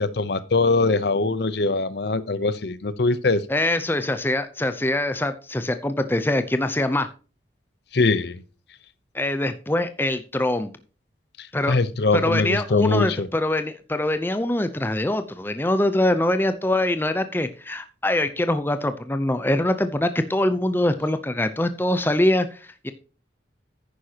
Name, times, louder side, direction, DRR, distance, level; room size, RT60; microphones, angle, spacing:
voice 1, 0.0-3.4 7.9-8.4 11.4-13.3, left 3 dB, 60° left, 0.7 m, -22 dB
voice 2, 3.5-7.1 9.1-10.7 11.5-11.8 12.1-22.9, left 1 dB, 10° left, 0.6 m, -23 dB
10.5 x 9.7 x 2.9 m
head